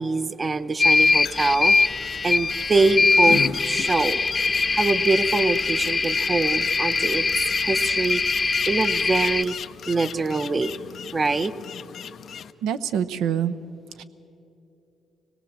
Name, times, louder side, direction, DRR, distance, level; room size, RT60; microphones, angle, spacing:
voice 1, 0.0-4.2 4.7-7.3 7.5-9.6 9.9-10.7 11.1-11.5, right 3 dB, 30° right, 12 dB, 0.7 m, -24 dB
sound 1, 0.8-9.4, left 4 dB, 30° left, 0.8 m, -22 dB
sound 2, 0.9-12.5, left 8 dB, 65° left, 0.6 m, -37 dB
voice 2, 12.6-13.5 14.0-14.1, right 9 dB, 90° right, 11 dB, 0.8 m, -25 dB
25.0 x 18.5 x 7.6 m, 2.8 s
cardioid pair, 90°, 0 cm